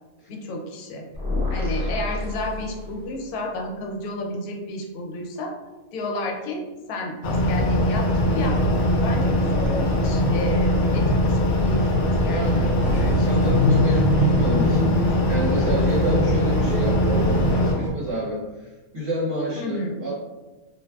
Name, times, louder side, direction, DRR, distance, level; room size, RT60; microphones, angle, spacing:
voice 1, 0.3-1.0 1.5-5.5 5.9-6.6 6.9-13.9 19.5-20.1, left 1 dB, 80° left, 1 dB, 1.1 m, -31 dB
sound 1, 1.1-3.3, left 2 dB, 5° right, 0.5 m, -28 dB
sound 2, 7.2-17.7, equal, 60° left, 1.0 m, -21 dB
sound 3, 8.4-17.9, left 1 dB, 65° right, 0.4 m, -28 dB
voice 2, 12.2-20.1, equal, 45° right, -8 dB, 0.8 m, -29 dB
3.3 x 2.4 x 2.2 m, 1.1 s
omnidirectional pair, 1.5 m